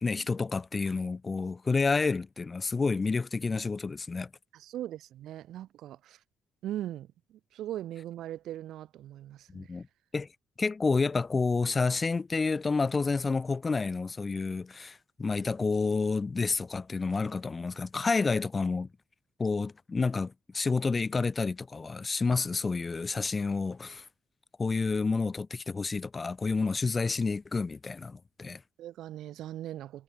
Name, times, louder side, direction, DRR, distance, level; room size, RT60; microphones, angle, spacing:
voice 1, 0.0-4.3 9.5-9.9 10.1-10.3 10.6-18.9 19.4-24.0 24.6-28.6, left 4 dB, 30° left, 0.7 m, -29 dB
voice 2, 4.5-6.2 6.6-9.7 28.8-30.0, right 12 dB, 80° right, 2.1 m, -40 dB
cardioid pair, 90°, 0 cm